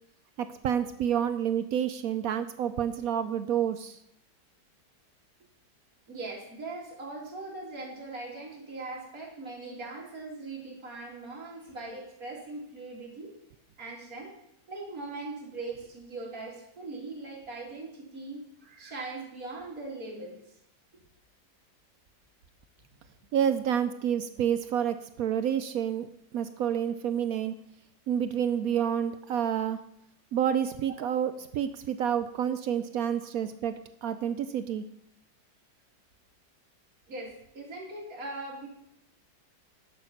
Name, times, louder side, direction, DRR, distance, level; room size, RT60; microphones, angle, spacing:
voice 1, 0.4-4.0 23.3-26.1 26.3-27.5 28.1-29.8 30.3-34.8, right 9 dB, 70° right, 11 dB, 0.9 m, -29 dB
voice 2, 6.1-13.3 13.8-14.3 14.7-20.4 33.1-33.2 37.1-38.7, right 2 dB, 50° right, -2 dB, 3.0 m, -40 dB
11.0 x 6.5 x 5.9 m, 0.74 s
omnidirectional pair, 1.9 m